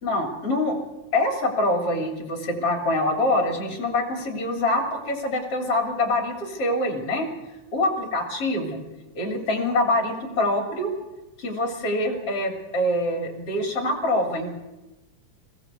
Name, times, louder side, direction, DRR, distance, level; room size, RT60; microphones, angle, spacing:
voice 1, 0.0-0.8 1.1-7.3 7.7-8.8 9.2-10.9 11.4-14.6, left 1 dB, 45° left, 4 dB, 3.8 m, -25 dB
20.0 x 16.5 x 8.2 m, 1.0 s
omnidirectional pair, 3.7 m